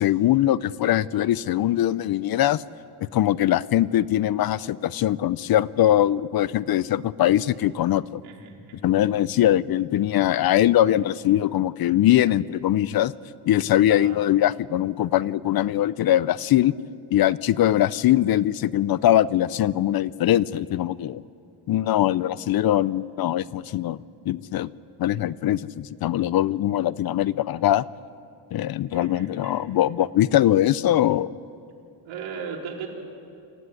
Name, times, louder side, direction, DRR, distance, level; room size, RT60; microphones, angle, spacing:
voice 1, 0.0-2.6 3.1-8.2 8.8-13.1 13.4-16.7 17.1-21.2 21.7-24.0 24.3-24.7 25.0-27.8 28.5-31.3, left 12 dB, 50° left, 19 dB, 0.5 m, -21 dB
voice 2, 8.2-8.9 13.9-14.2 28.9-29.7 32.0-32.9, right 6 dB, 75° right, -1 dB, 4.1 m, -37 dB
25.5 x 14.0 x 9.7 m, 2.5 s
cardioid pair, 145°, 47 cm